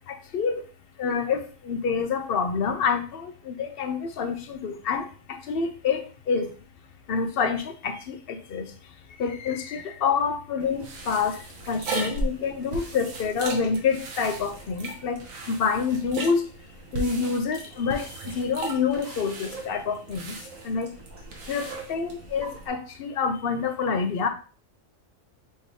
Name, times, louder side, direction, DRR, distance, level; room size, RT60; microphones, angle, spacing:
voice 1, 0.1-0.6 1.0-6.5 7.1-8.7 9.2-11.4 11.7-16.4 16.9-20.3 20.6-20.9 21.5-24.3, left 5 dB, 55° left, 7 dB, 0.7 m, -27 dB
sound 1, 10.6-22.7, right 2 dB, 80° right, 1.3 m, -37 dB
6.0 x 3.1 x 2.7 m, 0.39 s
omnidirectional pair, 1.4 m